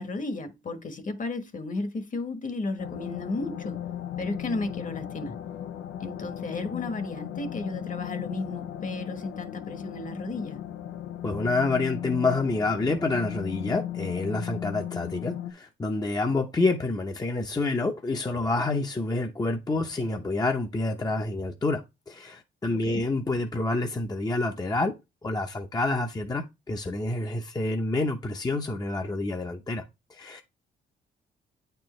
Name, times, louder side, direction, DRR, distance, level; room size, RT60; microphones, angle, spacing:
voice 1, 0.0-3.8 4.2-5.3 6.0-10.6 22.7-23.0, left 2 dB, 40° left, 1.4 m, -34 dB
sound 1, 2.8-15.5, left 10 dB, 80° left, 0.7 m, -36 dB
voice 2, 11.2-25.0 25.2-29.8 30.1-30.4, left 2 dB, 20° left, 0.8 m, -28 dB
8.5 x 4.5 x 3.2 m
cardioid pair, 90°, 20 cm